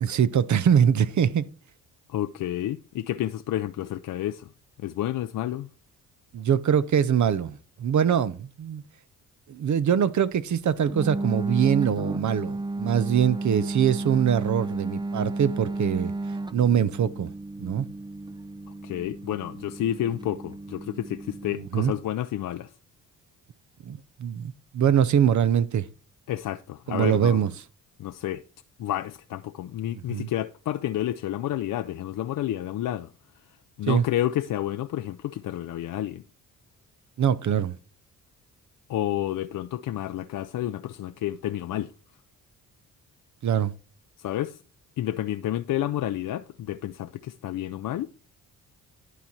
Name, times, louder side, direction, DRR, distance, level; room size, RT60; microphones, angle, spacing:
voice 1, 0.0-1.5 6.3-8.8 9.5-16.1 16.5-17.3 17.6-17.9 21.5-21.9 23.9-25.8 26.9-27.5 30.1-30.3 33.9-34.0 37.2-37.7 43.4-43.7, right 8 dB, 50° right, 0.7 m, -23 dB
voice 2, 2.1-4.5 4.8-5.7 18.8-22.7 26.3-27.4 28.0-28.4 28.8-33.1 33.8-36.2 38.9-41.9 44.2-44.6 45.0-48.1, left 12 dB, 55° left, 0.5 m, -30 dB
sound 1, 10.9-21.7, right 2 dB, 10° right, 0.5 m, -33 dB
11.0 x 4.1 x 4.4 m
supercardioid pair, 50°, 39 cm